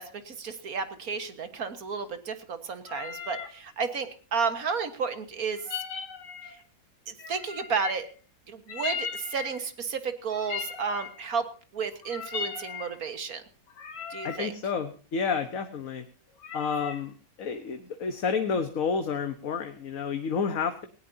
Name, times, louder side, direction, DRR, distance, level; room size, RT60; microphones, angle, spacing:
voice 1, 0.0-5.6 7.1-8.1 8.5-11.5 11.7-13.4 14.1-14.5, right 5 dB, 50° right, 9 dB, 1.9 m, -32 dB
sound 1, 2.9-3.6 5.5-6.6 7.2-8.1 8.7-9.6 10.3-11.2 11.9-12.9 13.7-14.5 16.4-17.0, left 6 dB, 70° left, 2.3 m, -37 dB
voice 2, 14.2-16.0 16.5-17.1 17.4-20.8, left 5 dB, 50° left, 7 dB, 1.4 m, -30 dB
19.0 x 18.0 x 2.8 m, 0.37 s
omnidirectional pair, 2.0 m